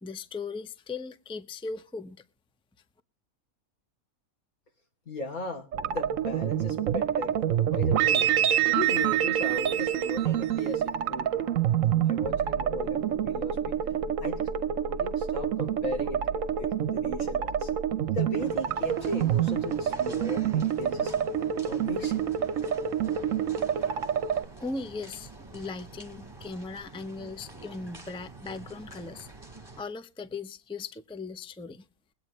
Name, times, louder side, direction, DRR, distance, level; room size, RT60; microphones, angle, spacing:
voice 1, 0.0-2.2 24.6-29.3 29.8-31.8, left 3 dB, 5° left, 0.6 m, -38 dB
voice 2, 5.1-8.3 8.7-11.5 12.0-13.7 14.2-14.5 14.9-17.7 18.1-21.1 21.7-22.2, left 1 dB, 80° left, 3.7 m, -37 dB
sound 1, 5.7-24.5, right 9 dB, 65° right, 1.1 m, -27 dB
sound 2, 18.4-29.8, right 2 dB, 15° right, 2.1 m, -47 dB
22.0 x 8.9 x 3.1 m
omnidirectional pair, 1.5 m